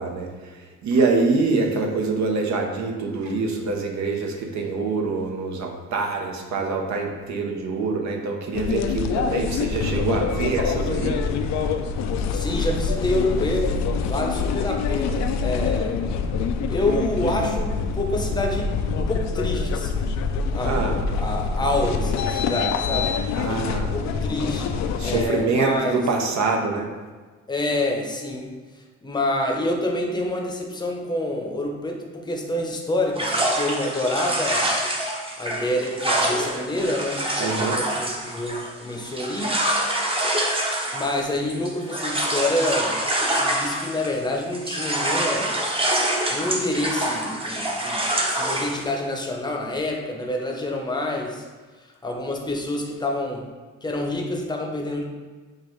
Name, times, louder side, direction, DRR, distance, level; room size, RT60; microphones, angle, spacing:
voice 1, 0.0-11.2 20.6-21.0 23.4-23.9 25.0-26.9 37.4-37.8, right 3 dB, 65° right, 2 dB, 0.8 m, -25 dB
sound 1, 8.5-25.3, left 5 dB, 65° left, 0.4 m, -25 dB
voice 2, 12.3-16.0 16.7-20.1 20.5-23.1 23.9-24.7 25.0-26.0 27.5-28.5 29.0-34.7 35.4-39.6 40.9-43.0 43.3-45.6 46.3-51.4 51.8-53.5 53.8-55.0, left 1 dB, 15° left, 1 dB, 0.7 m, -27 dB
sound 2, 33.2-44.3 44.5-48.8, right 1 dB, 20° right, 0.7 m, -26 dB
6.4 x 2.5 x 3.1 m, 1.4 s
cardioid pair, 90°, 30 cm